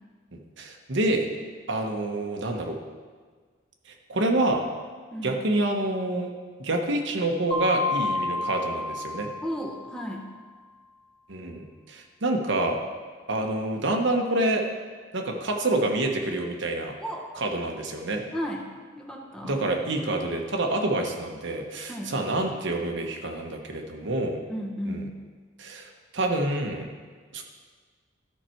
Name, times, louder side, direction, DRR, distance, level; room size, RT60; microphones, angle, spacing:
voice 1, 0.3-1.3 1.7-2.8 3.9-4.6 5.2-6.3 6.6-9.3 11.3-12.8 13.3-14.6 15.1-16.9 17.4-18.2 19.4-24.4 24.9-25.0 25.6-26.9 27.3-27.4, right 2 dB, 65° right, 2 dB, 1.1 m, -27 dB
voice 2, 5.1-5.4 9.4-10.3 17.0-17.3 18.3-18.7 19.0-19.6 21.9-22.2 24.5-25.2, equal, 5° left, 0 dB, 1.0 m, -34 dB
Mallet percussion, 7.5-10.1, left 2 dB, 25° left, 1.5 m, -30 dB
13.0 x 5.9 x 4.5 m, 1.5 s
head